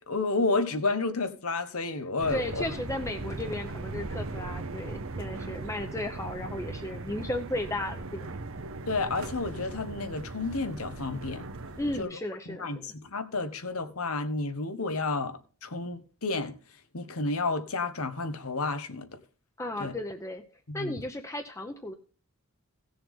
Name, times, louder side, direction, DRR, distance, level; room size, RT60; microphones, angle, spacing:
voice 1, 0.1-2.6 8.9-11.4 12.0-12.1 12.5-16.5 16.9-19.1 19.8-19.9 20.7-20.9, left 3 dB, 80° left, 1.3 m, -31 dB
sound 1, 2.2-12.0, right 2 dB, 65° right, 1.0 m, -38 dB
voice 2, 2.3-8.3 11.7-12.8 19.6-20.4 20.7-21.9, left 1 dB, 15° left, 0.9 m, -35 dB
17.0 x 7.0 x 3.7 m
head